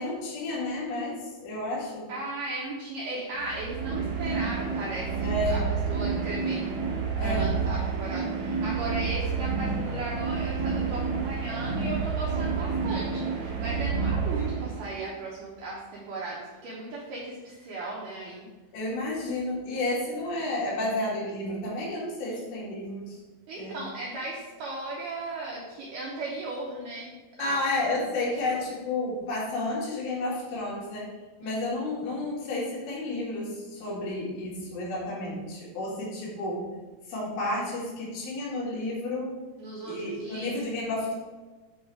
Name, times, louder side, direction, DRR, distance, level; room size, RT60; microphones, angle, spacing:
voice 1, 0.0-2.1 5.2-5.7 7.2-7.5 18.7-23.2 23.6-23.8 27.4-31.1 31.4-36.6 37.1-39.3 39.8-41.1, left 2 dB, 85° left, -6 dB, 4.2 m, -31 dB
voice 2, 2.1-6.6 7.2-18.5 23.5-27.1 27.4-27.7 28.5-28.6 31.4-31.6 39.6-40.6, right 2 dB, 85° right, -5 dB, 1.9 m, -36 dB
sound 1, 3.3-15.1, right 5 dB, 60° right, 2.7 m, -29 dB
8.4 x 3.2 x 4.5 m, 1.3 s
omnidirectional pair, 4.9 m